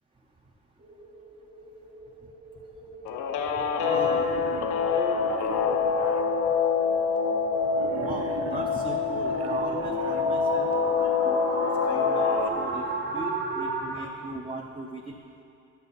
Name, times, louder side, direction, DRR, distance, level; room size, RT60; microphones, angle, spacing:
sound 1, 0.8-14.0, right 3 dB, 35° right, 1.0 m, -36 dB
Guitar, 3.1-12.5, left 6 dB, 80° left, 0.6 m, -26 dB
voice 1, 3.5-4.3 7.9-12.9 13.1-15.2, right 2 dB, 20° right, -1 dB, 0.7 m, -38 dB
Wild animals, 3.7-6.2 7.7-10.2, right 6 dB, 55° right, 0.7 m, -40 dB
10.0 x 6.9 x 4.2 m, 2.6 s
cardioid pair, 90°, 30 cm